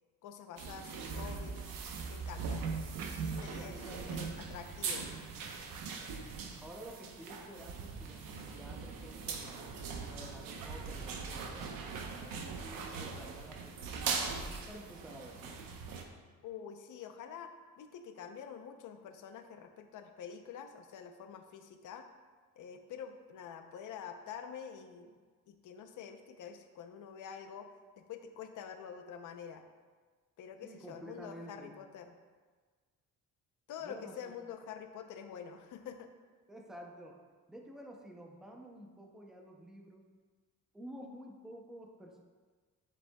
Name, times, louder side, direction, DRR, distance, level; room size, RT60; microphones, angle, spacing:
voice 1, 0.2-1.7 2.1-2.7 3.2-5.1 16.4-22.1 22.6-25.2 25.5-27.7 28.0-29.6 30.4-32.1 33.7-36.1, left 7 dB, 65° left, 6 dB, 0.7 m, -47 dB
sound 1, 0.6-16.0, right 5 dB, 85° right, 0.9 m, -40 dB
voice 2, 3.5-4.3 6.6-9.8 10.1-14.2 14.7-15.6 30.6-31.8 33.8-34.3 36.5-37.2 37.5-40.1 40.7-42.2, right 1 dB, ahead, 0 dB, 0.5 m, -51 dB
9.9 x 7.3 x 2.3 m, 1.5 s
cardioid pair, 175°, 33 cm